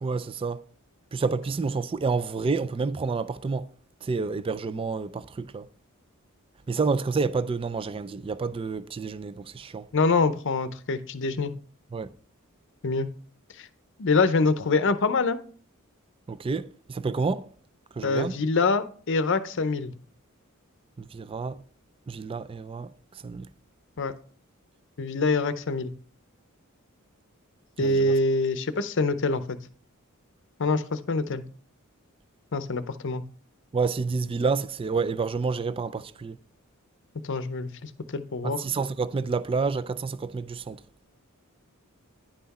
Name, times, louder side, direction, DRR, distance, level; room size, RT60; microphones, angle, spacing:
voice 1, 0.0-0.6 1.1-3.7 4.0-5.7 6.7-9.9 11.9-12.2 16.3-17.5 17.9-18.4 21.0-21.6 22.1-23.5 27.8-28.1 33.7-36.4 38.4-40.8, right 4 dB, 25° right, 0.3 m, -29 dB
voice 2, 9.9-11.5 12.8-13.1 13.6-13.7 14.0-15.4 18.0-19.9 24.0-24.1 25.0-25.9 27.8-29.6 30.6-31.4 32.5-33.2 37.2-38.6, left 3 dB, 60° left, 0.7 m, -25 dB
10.0 x 5.8 x 4.1 m
head